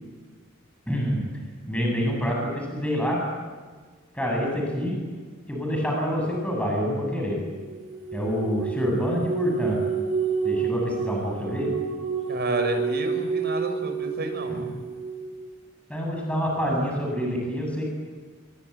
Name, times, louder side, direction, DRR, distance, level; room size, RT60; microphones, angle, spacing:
voice 1, 0.9-1.2 1.7-3.2 4.1-5.0 5.5-7.4 8.1-9.8 10.4-11.8 14.5-14.7 15.9-17.8, equal, 5° left, -1 dB, 8.0 m, -27 dB
sound 1, 7.6-15.5, right 6 dB, 80° right, 4.2 m, -29 dB
voice 2, 12.3-14.7, right 1 dB, 50° right, 5 dB, 6.1 m, -30 dB
29.0 x 23.0 x 8.4 m, 1.5 s
head